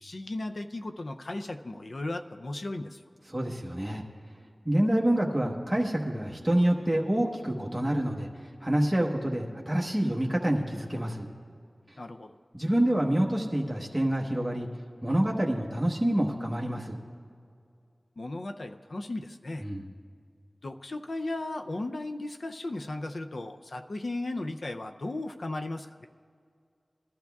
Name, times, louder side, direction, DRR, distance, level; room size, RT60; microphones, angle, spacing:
voice 1, 0.0-3.0 12.0-12.4 18.2-19.6 20.6-26.1, left 2 dB, 70° left, 6 dB, 0.4 m, -36 dB
voice 2, 3.3-4.0 4.6-8.3 8.6-11.3 12.5-14.7 15.0-17.0 19.6-19.9, right 1 dB, 10° right, -2 dB, 1.1 m, -27 dB
19.5 x 12.0 x 2.3 m, 2.3 s
wide cardioid pair, 70°, 0 cm